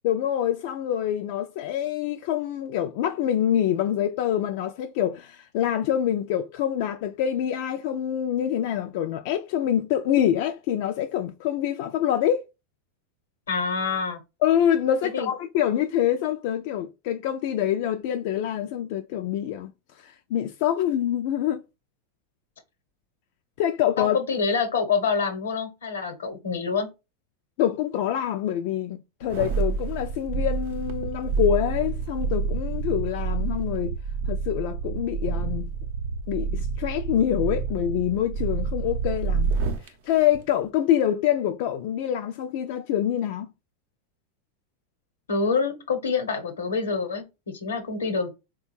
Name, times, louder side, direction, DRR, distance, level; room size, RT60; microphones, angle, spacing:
voice 1, 0.0-12.5 14.4-19.7 20.0-21.6 23.6-24.2 27.6-34.0 34.3-35.7 36.3-39.5 39.8-43.5, left 10 dB, 60° left, 0.3 m, -26 dB
voice 2, 13.5-14.2 15.0-15.3 24.0-26.9 45.3-48.3, left 5 dB, 90° left, 0.9 m, -26 dB
sound 1, 29.2-39.9 40.3-40.4, right 5 dB, 70° right, 0.6 m, -28 dB
3.6 x 2.2 x 3.0 m
hypercardioid pair, 100°, 0 cm